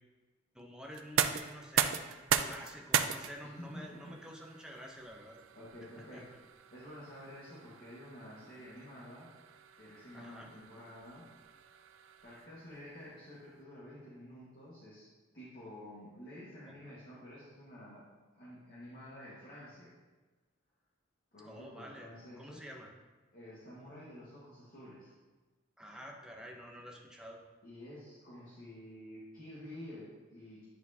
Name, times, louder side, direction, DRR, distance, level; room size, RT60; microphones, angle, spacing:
voice 1, 0.5-2.0 2.3-5.4 6.1-6.2 10.1-10.5 21.4-22.9 25.8-27.4, equal, 5° right, 0 dB, 0.7 m, -49 dB
sound 1, 0.9-12.7, right 9 dB, 70° right, 0.4 m, -38 dB
voice 2, 3.6-4.0 5.5-6.2 6.7-9.3 9.8-11.2 12.2-15.1 15.3-18.0 18.3-19.9 21.3-22.6 23.3-25.1 27.6-30.6, left 1 dB, 50° left, -8 dB, 1.5 m, -50 dB
10.0 x 4.4 x 2.8 m, 1.3 s
head